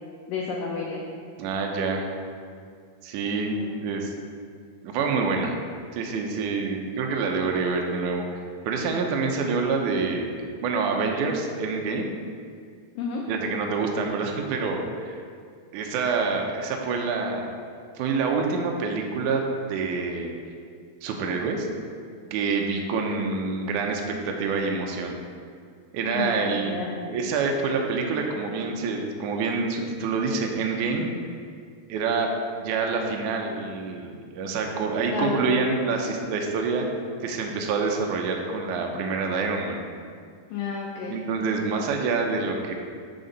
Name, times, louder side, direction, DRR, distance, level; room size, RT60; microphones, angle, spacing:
voice 1, 0.3-1.0 3.3-3.8 13.0-13.2 26.0-26.9 35.0-35.6 36.0-36.1 40.5-41.1, left 5 dB, 75° left, -2 dB, 2.1 m, -31 dB
voice 2, 1.4-2.1 3.0-4.1 4.8-5.5 5.9-10.3 10.6-12.1 13.3-15.2 15.7-17.5 17.9-19.4 19.7-20.3 21.0-21.7 22.3-25.1 25.9-31.1 31.9-32.3 32.6-36.9 37.2-39.8 41.1-42.7, right 4 dB, 85° right, 2 dB, 1.7 m, -27 dB
7.8 x 5.2 x 4.0 m, 2.2 s
omnidirectional pair, 4.5 m